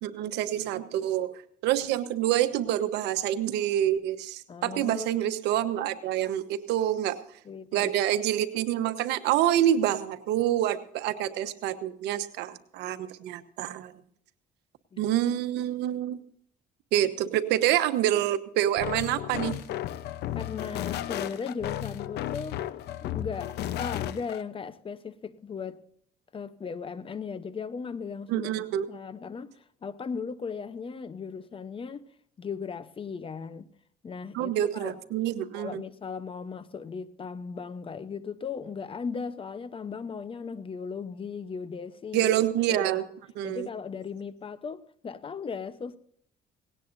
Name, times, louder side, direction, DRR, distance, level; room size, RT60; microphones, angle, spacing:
voice 1, 0.0-7.2 7.7-13.9 15.0-16.2 16.9-19.6 28.3-28.9 34.3-35.8 42.1-43.0 43.3-43.7, right 12 dB, 90° right, 1.1 m, -27 dB
voice 2, 4.5-5.1 7.4-7.9 14.9-15.1 20.3-22.6 23.1-25.8 26.3-28.5 28.9-32.0 32.4-33.7 34.0-35.0 35.5-42.3 42.7-42.9 43.4-46.0, left 5 dB, 30° left, 0.9 m, -37 dB
sound 1, 18.8-24.4, left 12 dB, 75° left, 0.8 m, -34 dB
18.0 x 17.5 x 2.7 m
cardioid pair, 110°, 17 cm